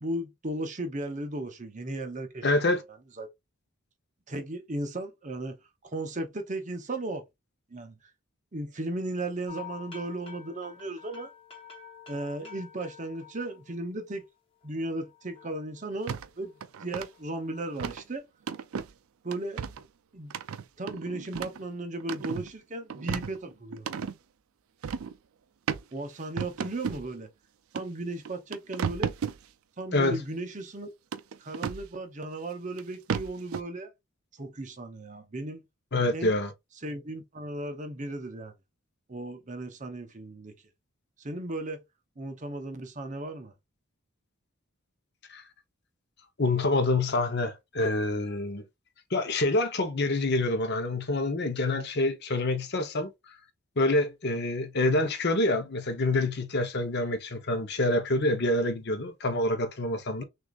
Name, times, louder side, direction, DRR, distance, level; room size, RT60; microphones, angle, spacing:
voice 1, 0.0-2.5 3.2-3.3 4.3-5.6 5.8-7.2 7.7-8.1 8.5-11.3 12.1-14.2 14.6-18.2 19.2-19.7 20.1-20.3 20.8-24.0 25.9-27.3 27.7-29.1 29.8-30.9 31.4-33.9 34.3-35.6 36.1-36.3 36.8-38.5 39.1-40.5 41.2-41.8 42.2-43.5, right 2 dB, 35° right, 0.7 m, -36 dB
voice 2, 2.4-2.8 29.9-30.2 35.9-36.5 45.3-45.4 46.4-48.6 49.1-53.1 53.8-60.2, left 2 dB, 50° left, 0.8 m, -26 dB
sound 1, 9.5-14.2 14.6-16.7 17.1-17.7, left 7 dB, 25° left, 1.2 m, -49 dB
sound 2, 16.1-16.3 16.6-17.1 17.8-18.0 18.5-18.9 19.3-19.8 20.3-21.6 22.0-22.5 22.9-24.1 24.8-25.1 25.7-25.8 26.4-27.1 27.8-27.9 28.2-29.4 31.1-31.9 32.8-32.9 33.1-33.6, right 7 dB, 75° right, 0.4 m, -33 dB
6.2 x 2.6 x 2.4 m
head